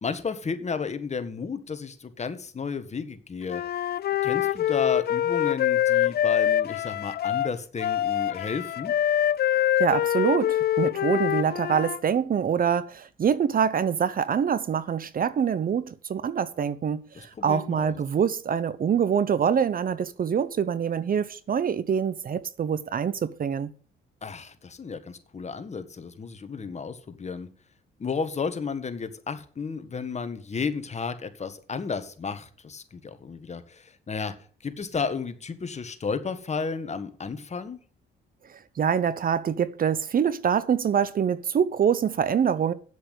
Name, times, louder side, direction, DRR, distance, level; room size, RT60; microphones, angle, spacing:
voice 1, 0.0-3.6 4.2-8.9 17.1-18.0 24.2-27.5 28.0-34.3 34.6-37.8, left 5 dB, 35° left, 1.7 m, -33 dB
Wind instrument woodwind instrument, 3.5-12.0, left 11 dB, 55° left, 0.5 m, -25 dB
voice 2, 9.5-23.7 38.8-42.7, right 7 dB, 45° right, 0.8 m, -25 dB
8.6 x 8.0 x 8.1 m
cardioid pair, 90°, 20 cm